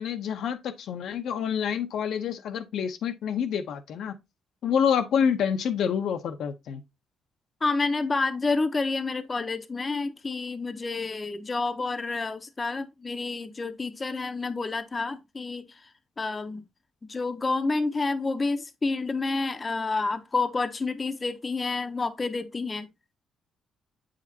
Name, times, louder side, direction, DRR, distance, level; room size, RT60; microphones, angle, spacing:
voice 1, 0.0-4.1 4.6-6.8, left 7 dB, 75° left, 0.7 m, -27 dB
voice 2, 7.6-15.7 16.2-16.6 17.1-22.9, left 3 dB, 25° left, 0.7 m, -29 dB
8.0 x 5.0 x 2.7 m
cardioid pair, 90°, 0 cm